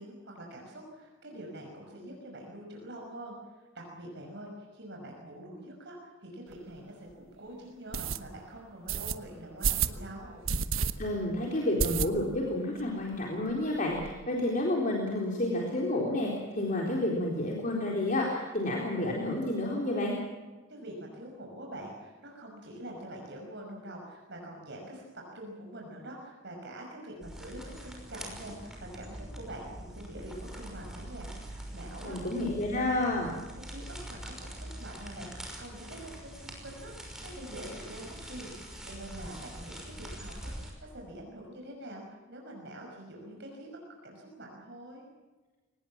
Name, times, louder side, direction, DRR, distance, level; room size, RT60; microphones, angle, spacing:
voice 1, 0.0-10.5 20.7-32.3 33.7-38.5 38.8-45.1, right 1 dB, 60° right, 0 dB, 5.8 m, -45 dB
sound 1, 6.5-6.6 7.1-7.2 7.9-8.2 8.9-9.1 9.6-10.0 10.4-10.9 11.2-11.3 11.8-12.4 12.8-12.9 13.1-13.2 13.5-14.1, right 6 dB, 85° right, 1.2 m, -30 dB
voice 2, 11.0-20.2 32.0-33.3, left 1 dB, 40° left, -1 dB, 3.9 m, -30 dB
sound 2, 27.2-40.7, right 1 dB, 5° right, 5.9 m, -44 dB
23.5 x 19.5 x 7.4 m, 1.3 s
head